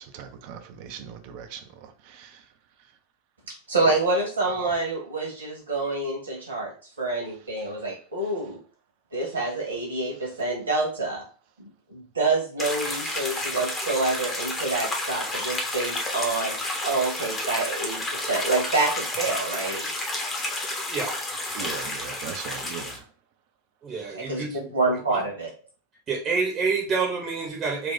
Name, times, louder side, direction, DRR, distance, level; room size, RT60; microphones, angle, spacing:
voice 1, 0.1-1.6 2.2-2.3 21.6-23.0, right 8 dB, 45° right, 0.6 m, -38 dB
voice 2, 3.7-6.7 7.0-8.6 9.1-11.2 11.6-16.5 16.8-19.9 24.1-24.4 24.7-25.5, right 3 dB, 75° right, 1.6 m, -27 dB
sound 1, 12.6-23.0, left 2 dB, 20° left, 1.0 m, -31 dB
voice 3, 23.8-24.7 25.1-25.2 26.1-27.9, right 4 dB, 25° right, 1.0 m, -28 dB
4.1 x 2.4 x 3.9 m
figure-of-eight pair, 90°, 0 cm